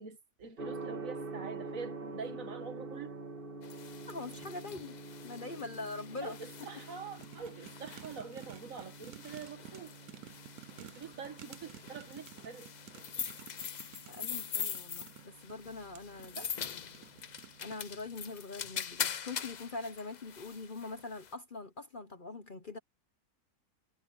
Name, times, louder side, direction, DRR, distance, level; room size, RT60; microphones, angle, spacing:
voice 1, 0.0-3.1 6.2-9.9 10.8-12.7 16.3-16.5, right 5 dB, 60° right, 1.8 m, -45 dB
Gong, 0.6-18.4, right 3 dB, 35° right, 2.6 m, -48 dB
sound 1, 3.6-21.3, left 7 dB, 55° left, 0.4 m, -43 dB
voice 2, 4.1-5.0 5.2-6.4 14.1-16.4 17.6-22.8, left 3 dB, 40° left, 1.0 m, -43 dB
sound 2, 7.2-18.0 18.5-19.0 19.2-19.3, right 12 dB, 75° right, 1.2 m, -53 dB
omnidirectional pair, 1.6 m